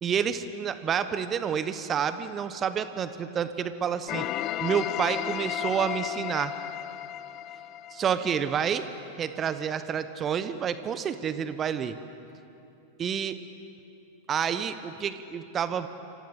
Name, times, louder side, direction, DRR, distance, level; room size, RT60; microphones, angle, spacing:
voice 1, 0.0-4.3 4.6-6.5 7.9-8.9 9.2-12.0 13.0-13.4 14.3-15.9, right 7 dB, 25° right, 12 dB, 1.1 m, -29 dB
sound 1, 4.1-8.9, left 12 dB, 35° left, 0.6 m, -34 dB
28.0 x 26.0 x 7.7 m, 2.8 s
figure-of-eight pair, 90°, 0 cm